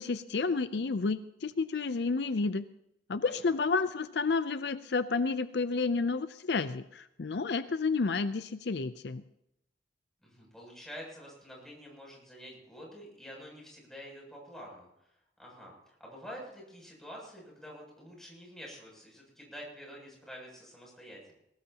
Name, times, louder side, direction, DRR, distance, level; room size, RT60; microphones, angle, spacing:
voice 1, 0.0-2.6 3.1-9.2, left 4 dB, 65° left, 12 dB, 0.5 m, -30 dB
voice 2, 10.2-14.9 15.4-21.3, equal, 5° left, -2 dB, 7.5 m, -48 dB
21.5 x 18.5 x 2.9 m, 0.82 s
head